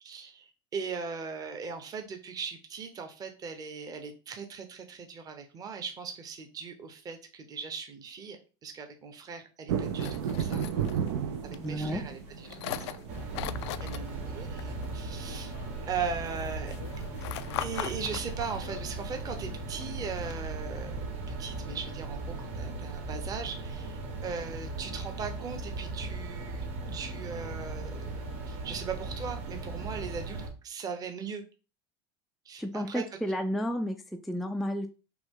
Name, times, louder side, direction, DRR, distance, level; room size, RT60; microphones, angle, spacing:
voice 1, 0.0-10.7 11.4-13.0 13.8-15.5 15.9-16.7 17.6-21.0 21.3-26.7 26.9-28.1 28.4-31.4 32.5-33.1, right 5 dB, 25° right, 6 dB, 0.8 m, -39 dB
sound 1, 9.7-15.1, right 8 dB, 75° right, 0.5 m, -34 dB
dropping more nails in a plastic box, 9.8-20.4, left 14 dB, 80° left, 0.4 m, -42 dB
voice 2, 11.6-12.0 32.6-34.0 34.2-34.9, equal, ahead, 4 dB, 0.3 m, -31 dB
sound 2, 13.1-30.5, right 3 dB, 50° right, 1.4 m, -38 dB
5.9 x 2.3 x 3.7 m, 0.33 s
supercardioid pair, 135°, 14 cm